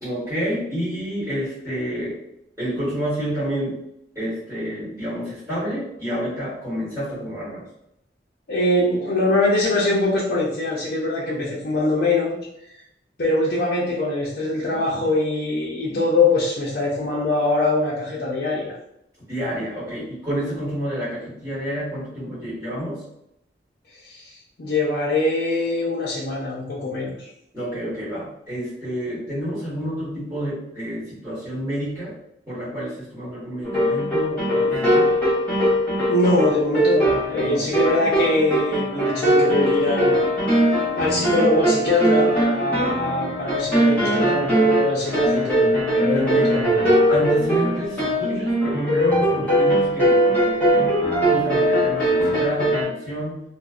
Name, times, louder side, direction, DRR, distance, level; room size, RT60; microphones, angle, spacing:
voice 1, 0.0-2.2 2.6-3.8 4.1-7.6 14.7-14.8 19.3-23.0 27.5-32.1 32.5-35.2 37.4-37.7 46.1-46.5 47.1-53.4, equal, 20° right, -12 dB, 1.2 m, -29 dB
voice 2, 8.5-12.3 13.2-18.8 24.0-27.3 36.1-40.1 40.9-46.8, left 2 dB, 55° left, -7 dB, 0.5 m, -23 dB
sound 1, 33.6-52.8, right 1 dB, 10° left, 0.8 m, -20 dB
2.5 x 2.1 x 2.3 m, 0.80 s
head